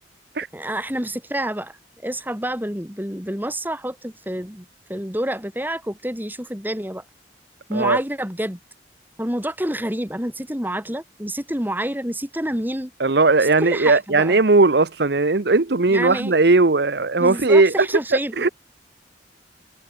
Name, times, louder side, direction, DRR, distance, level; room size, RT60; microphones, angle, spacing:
voice 1, 0.5-1.8 2.0-7.0 7.7-8.6 9.2-12.9 13.4-14.4 15.9-16.3 17.2-18.5, right 1 dB, 10° right, 3.5 m, -28 dB
voice 2, 13.0-17.9 18.4-18.5, right 3 dB, 65° right, 0.9 m, -17 dB
head